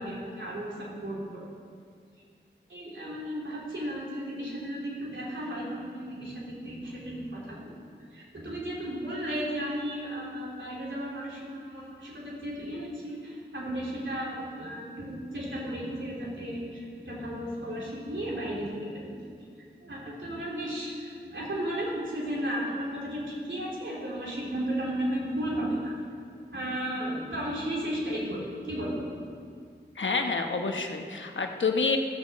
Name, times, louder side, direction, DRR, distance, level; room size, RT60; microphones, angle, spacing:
voice 1, 0.0-1.5 2.7-7.7 8.1-19.2 19.8-26.0 26.5-29.1, equal, 85° right, -5 dB, 3.3 m, -34 dB
voice 2, 30.0-32.0, left 4 dB, 85° left, 4 dB, 1.0 m, -28 dB
15.0 x 6.5 x 7.3 m, 2.2 s
wide cardioid pair, 45°, 19 cm